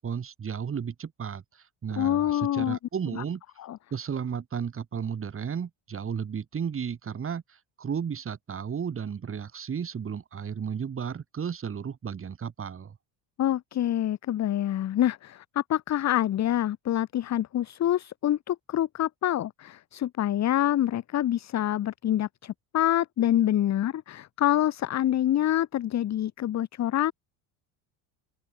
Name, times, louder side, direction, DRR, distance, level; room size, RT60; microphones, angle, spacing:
voice 1, 0.0-3.4 3.9-13.0, right 7 dB, 30° right, 4.6 m, -34 dB
voice 2, 2.0-2.8 3.1-3.2 3.7-3.8 13.4-27.1, left 12 dB, 35° left, 1.2 m, -26 dB
open air
cardioid pair, 125°, 44 cm